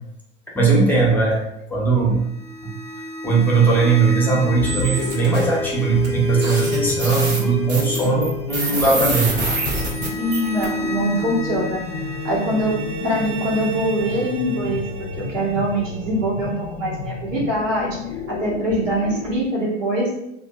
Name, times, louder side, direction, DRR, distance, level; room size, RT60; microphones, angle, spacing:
voice 1, 0.5-1.4 1.7-2.2 3.2-9.4, right 4 dB, 5° left, -4 dB, 0.7 m, -19 dB
sound 1, 2.2-17.1, left 1 dB, 65° right, 0.8 m, -31 dB
sound 2, 4.3-19.4, left 6 dB, 55° left, 0.5 m, -31 dB
sound 3, 4.6-5.4 6.0-6.1 6.4-10.6, right 3 dB, 30° right, 0.7 m, -26 dB
voice 2, 10.2-11.8 12.2-18.0 18.3-20.1, right 1 dB, 80° right, -4 dB, 1.1 m, -23 dB
2.5 x 2.3 x 2.3 m, 0.82 s
hypercardioid pair, 90°, 38 cm